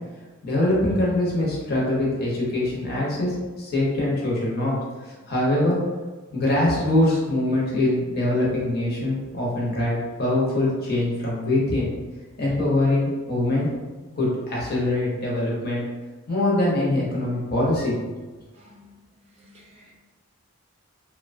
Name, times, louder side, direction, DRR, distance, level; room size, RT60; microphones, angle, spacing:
voice 1, 0.4-4.8 5.0-5.8 6.3-11.9 12.4-13.7 14.2-15.8 16.3-18.1, left 1 dB, 45° left, -5 dB, 0.7 m, -23 dB
voice 2, 18.6-18.9 19.4-20.0, left 1 dB, 30° right, -4 dB, 0.4 m, -53 dB
2.8 x 2.1 x 2.5 m, 1.3 s
head